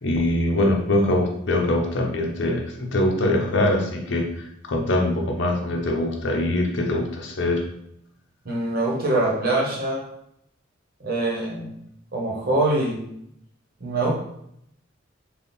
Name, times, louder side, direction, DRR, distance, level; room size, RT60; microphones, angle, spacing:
voice 1, 0.0-7.6, left 1 dB, 65° left, 2 dB, 0.6 m, -23 dB
voice 2, 8.4-10.0 11.0-11.8 12.1-13.0 13.8-14.1, right 2 dB, 50° right, -3 dB, 1.1 m, -24 dB
3.5 x 2.3 x 4.1 m, 0.76 s
head